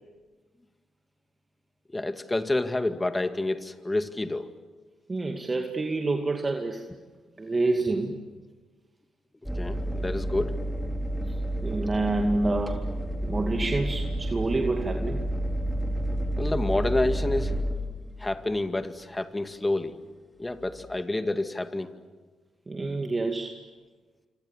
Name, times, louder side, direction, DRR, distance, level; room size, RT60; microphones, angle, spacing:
voice 1, 1.9-4.5 9.5-10.5 16.4-17.6 18.2-19.9 20.4-21.9, left 2 dB, 20° left, 8 dB, 2.2 m, -28 dB
voice 2, 5.1-6.8 7.4-8.2 11.3-11.4 11.6-12.8 13.3-15.2 22.7-23.6, right 2 dB, 30° right, 3 dB, 2.3 m, -27 dB
sound 1, 9.4-18.6 20.6-21.0, right 1 dB, ahead, 3.8 m, -30 dB
27.0 x 27.0 x 7.4 m, 1.4 s
hypercardioid pair, 50°, 0 cm